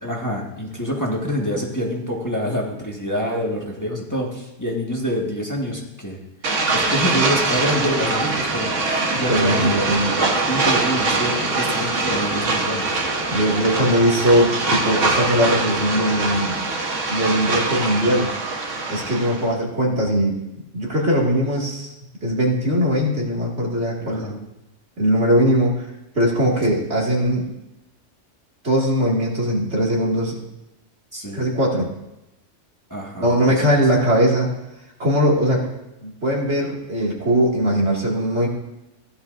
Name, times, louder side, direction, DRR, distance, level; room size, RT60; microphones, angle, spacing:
voice 1, 0.0-6.2 6.4-9.8 10.5-13.0 19.3-19.4 24.0-24.4 31.1-31.4 32.9-33.7, equal, 15° left, -3 dB, 1.6 m, -26 dB
sound 1, 6.4-19.5, right 3 dB, 80° right, 1.6 m, -23 dB
voice 2, 9.3-10.1 13.3-16.6 17.1-18.3 18.9-20.3 20.7-21.9 22.2-24.4 25.0-25.9 26.1-27.5 28.6-30.3 31.3-31.9 33.2-34.5 35.0-35.7 36.0-38.5, equal, 65° right, -3 dB, 2.6 m, -20 dB
16.0 x 11.5 x 2.6 m, 0.91 s
omnidirectional pair, 1.3 m